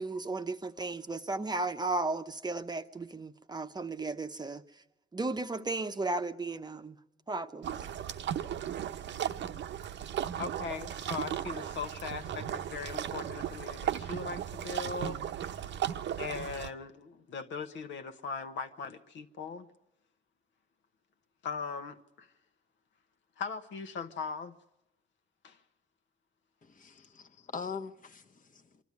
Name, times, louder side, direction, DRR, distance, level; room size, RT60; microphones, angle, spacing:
voice 1, 0.0-4.6 5.1-7.0 7.3-7.9, right 3 dB, 20° right, 0.8 m, -35 dB
sound 1, 7.6-16.7, right 10 dB, 65° right, 0.8 m, -36 dB
voice 2, 10.4-15.3 16.2-19.7 21.4-22.3 23.4-24.6 25.4-25.6 26.9-27.1, left 5 dB, 70° left, 1.1 m, -39 dB
voice 3, 26.6-28.8, left 5 dB, 40° left, 1.2 m, -43 dB
24.5 x 12.5 x 9.5 m
cardioid pair, 90°, 20 cm